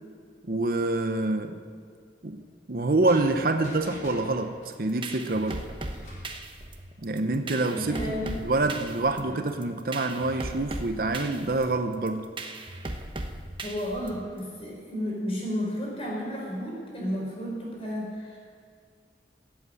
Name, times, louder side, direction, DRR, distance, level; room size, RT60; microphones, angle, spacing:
voice 1, 0.4-1.6 2.2-5.7 7.0-12.3, right 2 dB, 55° right, 7 dB, 0.8 m, -27 dB
sound 1, 3.1-6.4, left 1 dB, 50° left, 4.2 m, -47 dB
sound 2, 4.7-14.4, right 2 dB, 30° right, 1.0 m, -38 dB
voice 2, 7.7-8.3 9.2-9.3 13.6-18.4, equal, 35° left, -3 dB, 4.8 m, -32 dB
16.5 x 8.4 x 7.7 m, 2.1 s
head